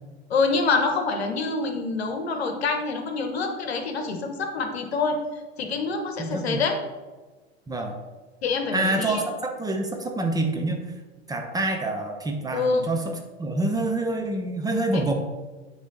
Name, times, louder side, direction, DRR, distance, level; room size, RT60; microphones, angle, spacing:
voice 1, 0.3-5.2 5.6-6.7 8.4-9.2 12.5-12.9 14.9-15.0, left 4 dB, 70° left, 5 dB, 1.0 m, -26 dB
voice 2, 6.2-6.6 7.7-7.9 8.7-10.8 11.3-13.1 13.4-15.1, right 2 dB, 10° right, 3 dB, 0.9 m, -26 dB
9.5 x 3.2 x 4.0 m, 1.3 s
figure-of-eight pair, 80°, 33 cm